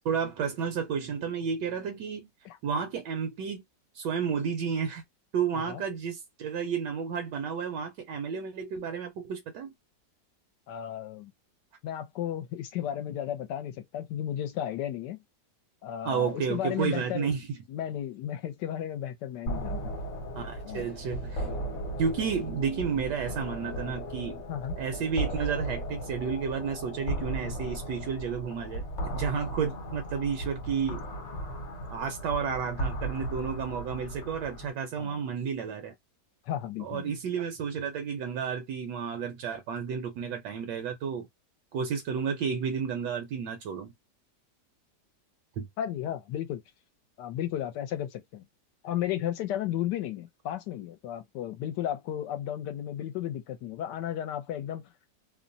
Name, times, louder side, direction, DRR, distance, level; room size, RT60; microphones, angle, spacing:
voice 1, 0.0-2.3 2.6-3.6 3.9-5.0 5.3-9.7 16.0-17.5 20.4-21.6 22.0-24.4 24.8-31.0 31.9-35.9 36.8-41.3 41.7-43.9 45.6-45.7, right 6 dB, 75° right, 1.2 m, -31 dB
voice 2, 10.7-11.3 11.8-15.2 15.8-17.3 17.7-19.9 20.6-20.9 24.5-24.8 35.0-35.2 36.5-37.1 45.8-46.6 47.2-48.5 48.8-54.9, left 11 dB, 75° left, 1.1 m, -34 dB
sound 1, 19.5-34.7, right 1 dB, 50° left, 1.1 m, -36 dB
3.0 x 2.1 x 2.5 m
omnidirectional pair, 1.9 m